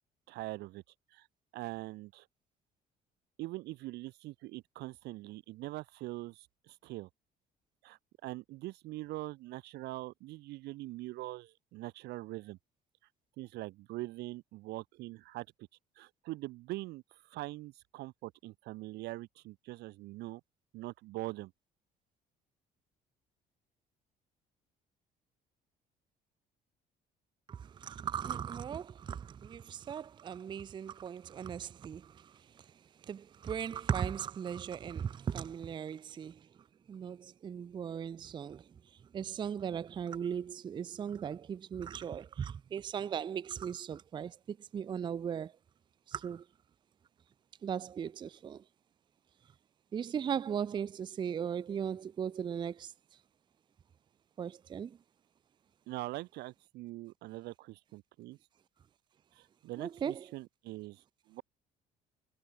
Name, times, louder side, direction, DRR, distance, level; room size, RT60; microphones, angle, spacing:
voice 1, 0.3-0.8 1.1-1.3 1.5-2.3 3.4-7.1 7.8-12.6 13.4-15.5 16.0-20.4 20.7-21.5 55.9-58.4 59.3-61.4, right 19 dB, 80° right, 0.6 m, -43 dB
voice 2, 27.5-32.3 33.1-36.4 36.9-38.6 39.1-45.5 46.1-46.4 47.6-48.6 49.9-52.9 54.4-55.0 59.8-60.3, right 8 dB, 25° right, 0.4 m, -38 dB
cardioid pair, 110°, 17 cm